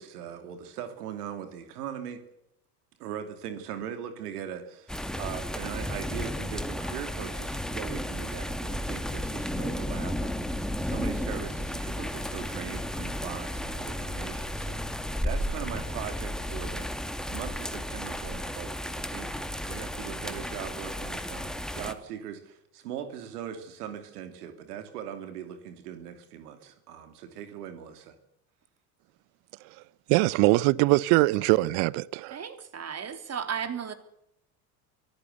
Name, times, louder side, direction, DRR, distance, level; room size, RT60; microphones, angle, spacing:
voice 1, 0.0-2.2 3.0-16.9 17.3-19.4 19.7-28.1, right 9 dB, 70° right, 2.8 m, -40 dB
sound 1, 4.9-21.9, equal, ahead, 2.1 m, -33 dB
voice 2, 30.1-32.4, right 21 dB, 55° right, 0.8 m, -22 dB
voice 3, 32.3-33.9, right 7 dB, 30° right, 3.4 m, -34 dB
24.5 x 15.0 x 8.2 m
hypercardioid pair, 70°, 47 cm